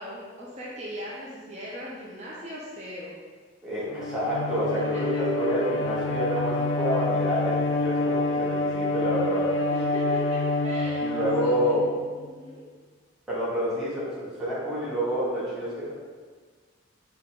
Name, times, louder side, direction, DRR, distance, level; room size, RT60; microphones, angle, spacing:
voice 1, 0.0-3.2 4.9-5.0 9.7-11.8 12.2-12.6, equal, 35° right, -6 dB, 0.5 m, -39 dB
voice 2, 3.6-9.5 11.0-11.9 13.3-15.9, equal, ahead, -10 dB, 1.3 m, -28 dB
Bowed string instrument, 3.9-12.3, left 2 dB, 75° left, 0.5 m, -27 dB
5.5 x 2.4 x 3.4 m, 1.5 s
head